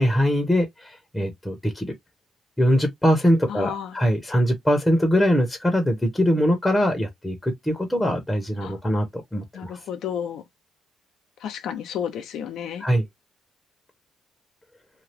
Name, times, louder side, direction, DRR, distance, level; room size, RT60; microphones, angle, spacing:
voice 1, 0.0-1.9 2.6-9.7 12.8-13.0, equal, 10° left, 1.0 m, -22 dB
voice 2, 3.5-4.0 8.6-8.8 9.5-10.4 11.4-12.8, left 8 dB, 80° left, 0.7 m, -32 dB
2.8 x 2.4 x 3.3 m
cardioid pair, 90°, 0 cm